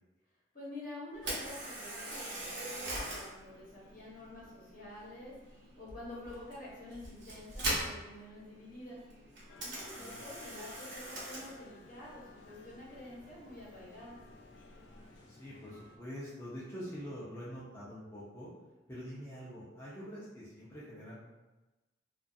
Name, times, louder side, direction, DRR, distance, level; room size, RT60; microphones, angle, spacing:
voice 1, 0.5-5.3 5.8-9.0 9.6-14.2, left 1 dB, 50° left, -7 dB, 0.9 m, -48 dB
Camera, 1.1-15.2, right 1 dB, 75° right, 0.9 m, -43 dB
sound 1, 9.5-16.0, left 3 dB, 75° left, 0.4 m, -57 dB
voice 2, 15.3-18.5 18.9-21.2, equal, 15° left, -10 dB, 0.5 m, -45 dB
2.4 x 2.3 x 2.5 m, 1.1 s
head